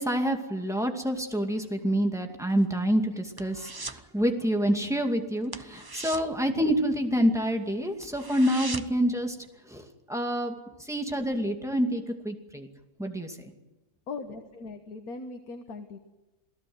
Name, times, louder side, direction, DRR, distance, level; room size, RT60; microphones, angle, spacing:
voice 1, 0.0-9.4 9.7-10.5 10.8-12.7 13.0-13.5, equal, ahead, 3 dB, 2.3 m, -27 dB
sound 1, 2.5-4.1 4.4-4.7 4.9-5.1 5.4-7.3 7.7-9.1 9.5-9.6, right 3 dB, 20° right, 0.7 m, -40 dB
voice 2, 14.1-16.0, left 3 dB, 75° left, 6 dB, 1.9 m, -39 dB
28.0 x 17.5 x 8.0 m, 1.1 s
omnidirectional pair, 1.6 m